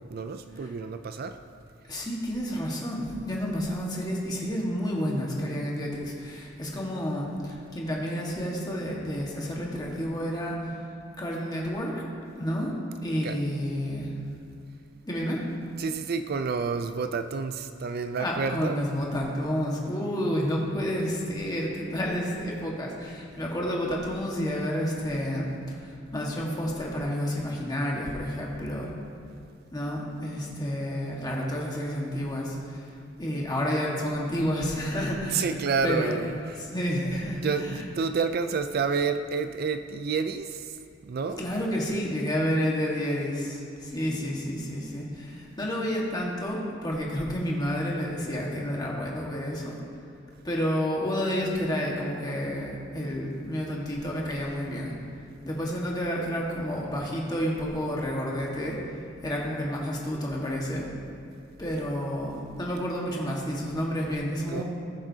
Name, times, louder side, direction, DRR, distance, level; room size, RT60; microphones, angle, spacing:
voice 1, 0.1-1.4 1.9-2.0 13.2-13.4 15.8-18.8 35.3-36.6 37.4-40.8 41.0-41.4 64.5-64.6, right 5 dB, 50° right, 9 dB, 0.4 m, -29 dB
voice 2, 1.9-10.8 11.2-11.9 12.4-12.7 13.0-14.1 15.0-15.4 18.2-28.9 29.7-32.9 33.2-35.5 35.8-36.2 36.6-37.4 41.4-49.8 50.4-54.9 55.4-58.8 59.2-60.9 61.6-64.6, equal, 20° left, -3 dB, 1.5 m, -30 dB
19.5 x 7.3 x 2.8 m, 2.4 s
head